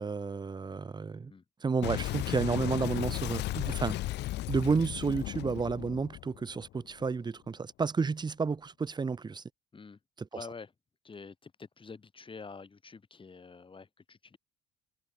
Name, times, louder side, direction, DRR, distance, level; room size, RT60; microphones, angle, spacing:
voice 1, 0.0-1.3 1.6-4.0 4.5-9.4 10.2-10.3, right 5 dB, 25° right, 1.1 m, -31 dB
Boom, 1.8-7.0, left 16 dB, 65° left, 0.7 m, -35 dB
voice 2, 10.3-10.7 11.0-14.4, left 4 dB, 25° left, 5.2 m, -47 dB
supercardioid pair, 90°, 19 cm